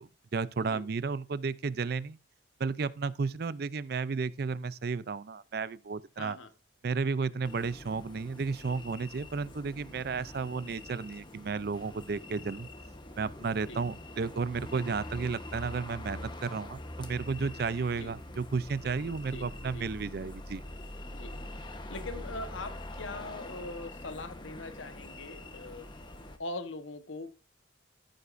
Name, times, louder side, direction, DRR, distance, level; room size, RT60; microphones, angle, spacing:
voice 1, 0.0-2.2 2.6-6.4 6.8-12.7 13.2-20.6, right 4 dB, 55° right, 0.4 m, -33 dB
voice 2, 6.2-6.5 13.7-13.8 18.0-18.1 19.2-19.9 21.1-21.4 21.9-25.9 26.4-27.4, left 2 dB, 85° left, 1.1 m, -42 dB
sound 1, 7.4-26.4, left 1 dB, 25° left, 1.0 m, -44 dB
14.5 x 8.2 x 2.6 m
head